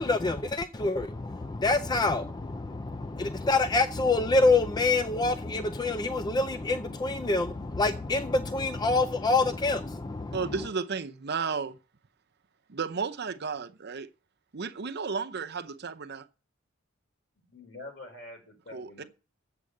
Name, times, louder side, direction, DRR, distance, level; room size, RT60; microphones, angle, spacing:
voice 1, 0.0-10.4, left 3 dB, 20° left, 0.4 m, -26 dB
voice 2, 10.3-11.8 12.7-14.1 14.5-16.3 18.7-19.0, right 5 dB, 55° right, 0.8 m, -33 dB
voice 3, 17.3-19.1, left 2 dB, 65° left, 5.0 m, -46 dB
7.7 x 7.6 x 8.5 m
head